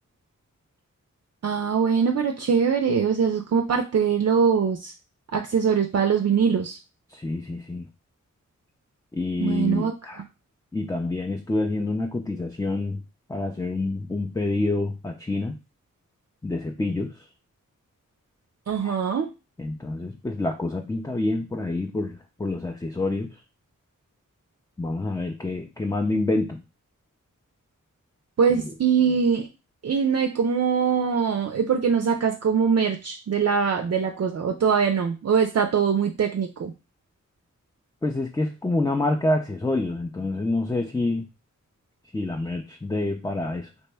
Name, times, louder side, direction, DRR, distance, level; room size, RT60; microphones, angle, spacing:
voice 1, 1.4-4.9 5.3-6.8 9.4-9.9 18.7-19.3 28.4-29.5 29.8-36.7, right 6 dB, 55° right, 4 dB, 0.4 m, -22 dB
voice 2, 7.1-7.9 9.1-10.2 10.7-13.0 13.3-15.6 16.4-17.2 18.8-19.0 19.6-23.3 24.8-26.6 28.5-28.7 38.0-41.3 42.1-43.7, left 2 dB, 10° left, 3 dB, 0.4 m, -27 dB
2.9 x 2.1 x 3.3 m, 0.28 s
cardioid pair, 45°, 31 cm